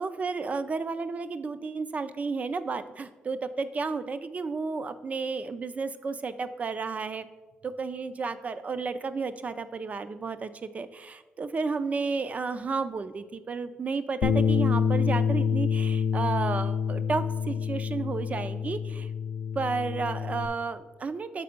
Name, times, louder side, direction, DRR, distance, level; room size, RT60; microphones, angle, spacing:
voice 1, 0.0-7.3 7.6-19.1 19.5-21.4, right 4 dB, 40° right, 12 dB, 0.5 m, -32 dB
Bass guitar, 14.2-20.5, left 7 dB, 80° left, 0.5 m, -27 dB
6.8 x 4.2 x 5.2 m, 1.2 s
cardioid pair, 75°, 4 cm